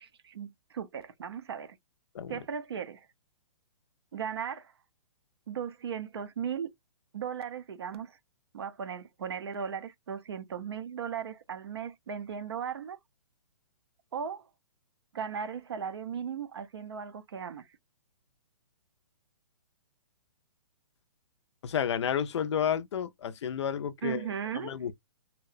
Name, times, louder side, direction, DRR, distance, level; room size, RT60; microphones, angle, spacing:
voice 1, 0.0-1.8 2.3-3.1 4.1-4.7 5.5-6.7 7.1-8.2 8.5-13.0 14.1-14.5 15.1-17.7 24.0-24.8, right 7 dB, 50° right, 0.4 m, -37 dB
voice 2, 21.6-24.3 24.5-24.9, left 8 dB, 55° left, 0.4 m, -31 dB
2.7 x 2.1 x 2.4 m
hypercardioid pair, 175°, 17 cm